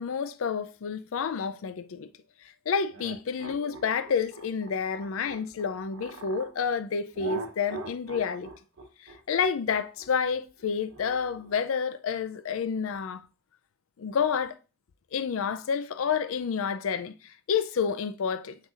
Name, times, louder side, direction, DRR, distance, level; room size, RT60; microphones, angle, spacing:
voice 1, 0.0-2.1 2.7-8.5 9.0-13.2 14.0-14.6 15.1-18.6, left 6 dB, 85° left, 0.4 m, -29 dB
sound 1, 2.9-6.5 7.1-11.7, right 2 dB, 90° right, 0.9 m, -42 dB
7.3 x 6.2 x 2.5 m
head